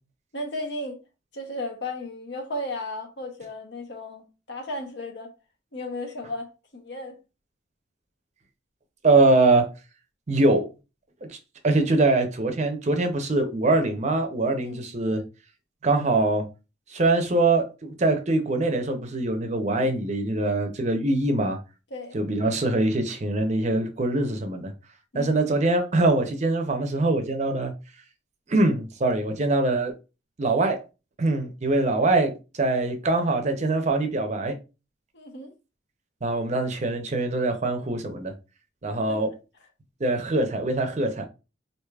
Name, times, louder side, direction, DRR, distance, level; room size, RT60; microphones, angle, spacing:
voice 1, 0.3-1.0 1.3-5.3 5.7-7.2 14.6-14.9 21.9-22.2 25.1-25.4 35.1-35.5 39.1-39.3, left 1 dB, 65° left, 0.8 m, -35 dB
voice 2, 9.0-9.7 10.3-10.7 11.2-11.4 11.6-15.2 15.8-16.5 16.9-21.6 22.1-24.7 25.1-27.7 28.5-29.9 30.4-30.8 31.2-34.6 36.2-38.3 38.8-39.3 40.0-41.3, right 2 dB, 40° right, 0.6 m, -23 dB
4.7 x 2.6 x 2.3 m
head